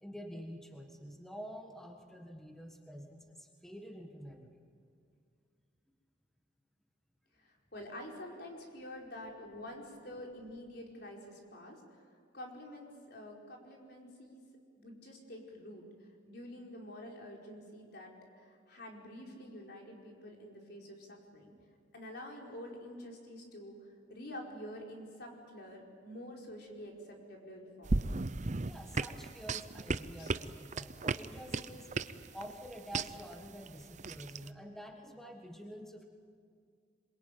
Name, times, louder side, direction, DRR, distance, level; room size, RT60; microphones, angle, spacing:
voice 1, 0.0-4.6 28.6-31.9 32.3-36.1, equal, ahead, 3 dB, 1.5 m, -48 dB
voice 2, 7.3-12.0 12.3-14.5 14.8-18.1 18.4-21.5 21.9-28.0 30.2-30.4, left 1 dB, 60° left, 0 dB, 4.9 m, -48 dB
sound 1, 27.8-34.5, right 3 dB, 40° right, 0.7 m, -36 dB
26.5 x 22.5 x 9.3 m, 2.2 s
head